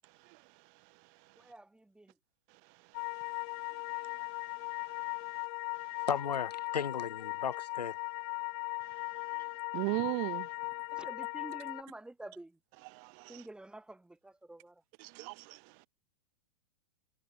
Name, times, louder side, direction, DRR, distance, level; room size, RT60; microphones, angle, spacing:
voice 1, 1.4-2.2 10.9-12.6 13.3-14.8, right 2 dB, 5° right, 5.3 m, -49 dB
sound 1, 2.9-11.8, left 31 dB, 40° left, 0.7 m, -38 dB
voice 2, 3.9-5.2 9.3-9.4 9.7-10.5 12.9-13.4 15.0-15.9, right 40 dB or more, 35° right, 0.6 m, -39 dB
voice 3, 6.1-8.0, left 7 dB, 85° left, 0.5 m, -35 dB
figure-of-eight pair, 105°, 20 cm